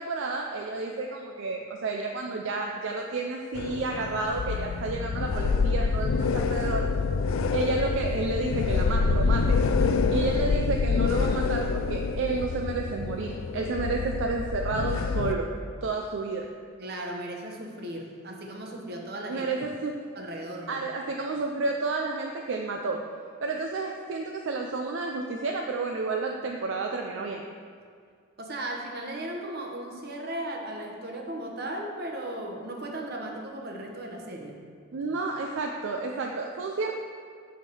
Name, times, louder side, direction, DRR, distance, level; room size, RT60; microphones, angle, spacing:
voice 1, 0.0-6.9 7.5-9.6 10.1-15.5 15.8-16.5 19.3-20.0 20.7-23.0 23.4-27.4 34.9-36.9, right 3 dB, 65° right, 1 dB, 0.4 m, -31 dB
sound 1, 3.5-15.3, left 4 dB, 75° left, 0.4 m, -26 dB
voice 2, 16.8-19.5 20.1-20.8 28.4-34.6, right 1 dB, 50° right, 1 dB, 1.0 m, -36 dB
8.4 x 3.6 x 6.1 m, 2.1 s
head